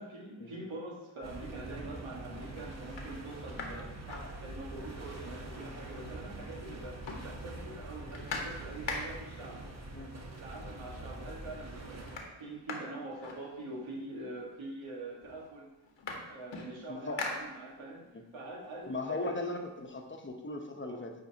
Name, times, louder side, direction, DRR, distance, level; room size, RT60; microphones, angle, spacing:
voice 1, 0.0-9.6 10.4-12.0 12.4-15.7 16.3-18.1 18.3-19.5 20.8-21.0, right 2 dB, 80° right, -2 dB, 1.7 m, -44 dB
sound 1, 1.2-12.2, right 2 dB, 35° right, 1.0 m, -44 dB
sound 2, 2.4-2.5 2.8-4.9 5.2-5.3 5.6-6.4 6.7-9.4 10.4-10.5 10.9-11.3 11.6-14.0 14.8-14.9 15.2-18.0 18.5-20.2, left 3 dB, 70° left, 1.2 m, -43 dB
voice 2, 16.9-17.2 18.1-18.2 18.9-21.1, left 2 dB, 25° left, 3 dB, 1.0 m, -38 dB
9.1 x 4.2 x 2.8 m, 0.99 s
cardioid pair, 70°, 46 cm